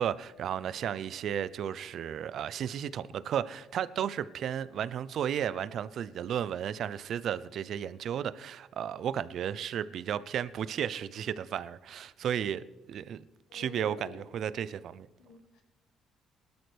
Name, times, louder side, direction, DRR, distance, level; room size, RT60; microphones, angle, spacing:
voice 1, 0.0-13.2 13.5-15.1, right 9 dB, 65° right, 0.5 m, -34 dB
voice 2, 13.5-14.2 15.2-15.6, left 4 dB, 85° left, 2.1 m, -47 dB
19.0 x 12.0 x 3.4 m
cardioid pair, 95°, 0 cm